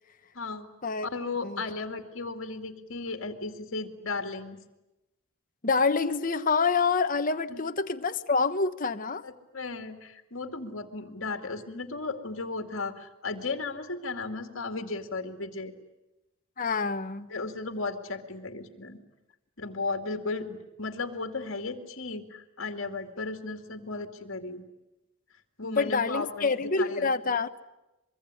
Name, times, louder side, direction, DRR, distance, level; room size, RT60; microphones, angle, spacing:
voice 1, 0.3-0.7 1.0-4.6 7.5-7.6 9.2-15.7 17.3-19.0 19.6-24.6 25.6-27.4, left 3 dB, 60° left, 6 dB, 2.4 m, -35 dB
voice 2, 5.6-9.2 16.6-17.3 25.6-27.5, left 4 dB, 40° left, 9 dB, 1.1 m, -27 dB
24.5 x 23.5 x 9.9 m, 0.97 s
head